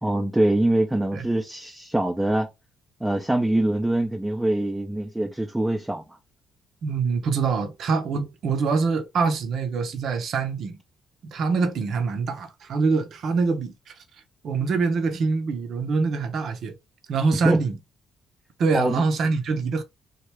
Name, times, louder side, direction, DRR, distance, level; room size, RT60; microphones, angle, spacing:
voice 1, 0.0-2.5 3.0-6.0 17.4-17.6 18.7-18.9, right 1 dB, 10° right, 0.6 m, -23 dB
voice 2, 6.8-10.8 11.2-13.9 14.4-16.8 17.1-17.8 18.6-19.8, right 4 dB, 65° right, 0.7 m, -24 dB
3.1 x 2.3 x 3.2 m
hypercardioid pair, 50°, 0 cm